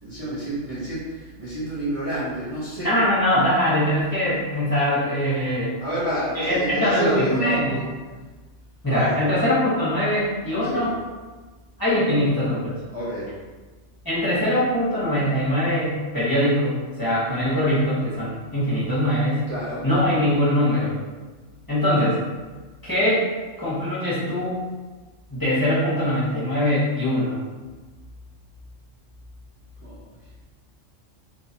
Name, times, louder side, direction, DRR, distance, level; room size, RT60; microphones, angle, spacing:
voice 1, 0.0-3.0 5.8-7.9 8.9-9.3 10.6-10.9 12.9-13.3 19.5-19.9 29.8-30.0, right 1 dB, 30° right, -11 dB, 0.8 m, -28 dB
voice 2, 2.8-5.7 6.3-7.7 8.8-10.9 11.8-12.8 14.0-19.4 19.8-20.9 21.7-22.2 22.8-23.3 23.6-24.6 25.3-27.4, left 1 dB, 20° left, -11 dB, 1.0 m, -22 dB
3.8 x 2.7 x 2.7 m, 1.3 s
omnidirectional pair, 1.3 m